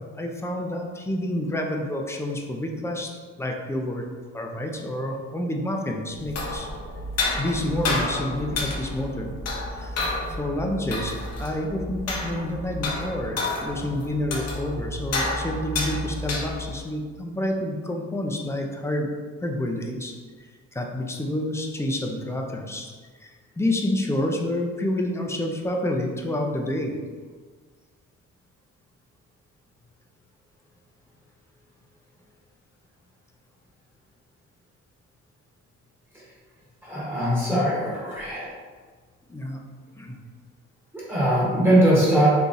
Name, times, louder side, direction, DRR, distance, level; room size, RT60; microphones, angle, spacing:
voice 1, 0.0-3.1 3.4-4.1 4.3-6.7 7.4-9.3 9.7-19.1 19.4-22.9 23.2-27.0 39.3-39.6 40.0-40.2, left 1 dB, 10° left, 1 dB, 0.4 m, -29 dB
sound 1, 6.1-16.8, left 2 dB, 55° left, 0.8 m, -30 dB
voice 2, 36.8-38.5 40.9-42.3, right 1 dB, 5° right, -7 dB, 1.1 m, -21 dB
3.9 x 2.8 x 2.5 m, 1.5 s
cardioid pair, 90°, 30 cm